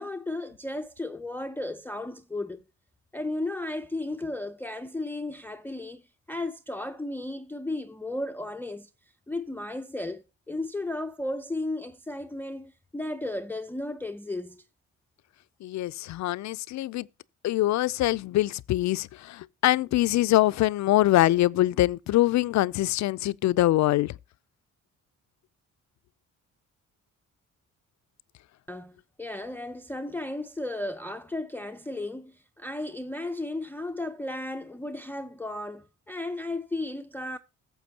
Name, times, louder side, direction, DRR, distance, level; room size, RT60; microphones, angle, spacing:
voice 1, 0.0-2.6 3.1-6.0 6.3-8.9 9.3-14.6 28.7-37.4, left 2 dB, 5° left, 0.5 m, -34 dB
voice 2, 15.6-17.1 17.4-24.1, left 15 dB, 65° left, 0.5 m, -24 dB
14.5 x 7.2 x 2.8 m
cardioid pair, 90°, 30 cm